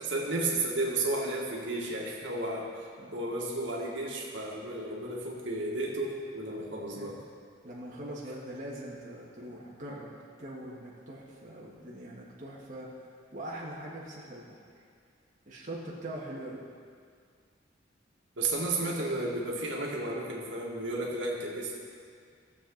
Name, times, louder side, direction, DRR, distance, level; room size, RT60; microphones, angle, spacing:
voice 1, 0.0-7.2 18.4-21.8, right 2 dB, 75° right, -3 dB, 1.9 m, -33 dB
voice 2, 7.6-14.7 15.5-16.6, right 1 dB, 45° right, -5 dB, 1.6 m, -42 dB
17.0 x 7.5 x 3.9 m, 2.1 s
head